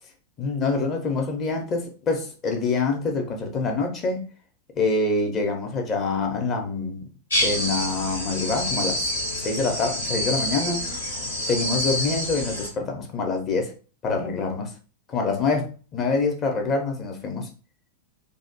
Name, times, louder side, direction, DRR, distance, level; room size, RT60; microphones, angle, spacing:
voice 1, 0.4-4.3 4.8-7.0 7.4-9.1 9.4-10.8 11.5-13.7 14.0-14.7 15.1-17.5, left 3 dB, 30° left, 0.7 m, -26 dB
sound 1, 7.3-12.7, left 1 dB, 75° left, 0.9 m, -27 dB
2.8 x 2.1 x 2.8 m
figure-of-eight pair, 90°, 0 cm